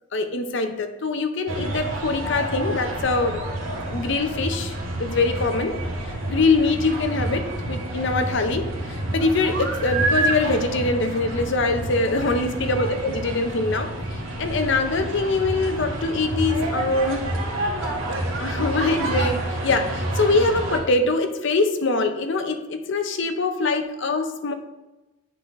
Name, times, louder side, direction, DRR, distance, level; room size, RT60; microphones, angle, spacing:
voice 1, 0.1-3.4 3.9-5.8 6.3-8.7 9.1-13.9 14.4-17.3 18.4-24.5, left 3 dB, 65° left, 8 dB, 0.6 m, -23 dB
sound 1, 1.5-20.8, right 1 dB, 80° right, 1.4 m, -28 dB
10.5 x 3.8 x 3.2 m, 1.0 s
head